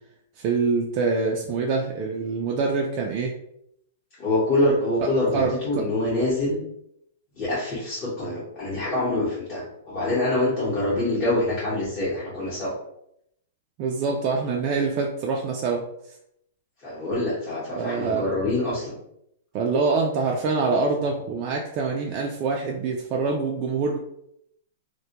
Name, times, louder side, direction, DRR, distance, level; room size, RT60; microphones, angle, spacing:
voice 1, 0.4-3.3 5.0-5.8 13.8-15.8 17.8-18.2 19.5-24.0, right 4 dB, 35° right, -1 dB, 0.3 m, -25 dB
voice 2, 4.2-6.6 7.3-12.8 16.8-19.0, left 1 dB, 30° left, -10 dB, 0.8 m, -25 dB
2.2 x 2.1 x 2.8 m, 0.74 s
hypercardioid pair, 155°, 0 cm